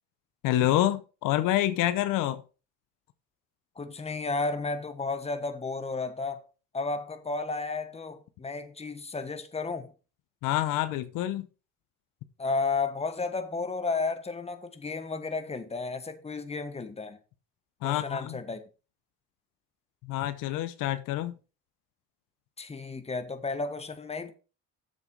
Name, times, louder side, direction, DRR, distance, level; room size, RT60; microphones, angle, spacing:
voice 1, 0.4-2.4 10.4-11.5 17.8-18.4 20.0-21.3, left 13 dB, 85° left, 0.9 m, -27 dB
voice 2, 3.7-6.5 6.7-9.9 12.4-17.2 17.8-18.6 22.6-24.3, left 3 dB, 20° left, 1.3 m, -33 dB
7.6 x 6.9 x 4.7 m
cardioid pair, 95°, 32 cm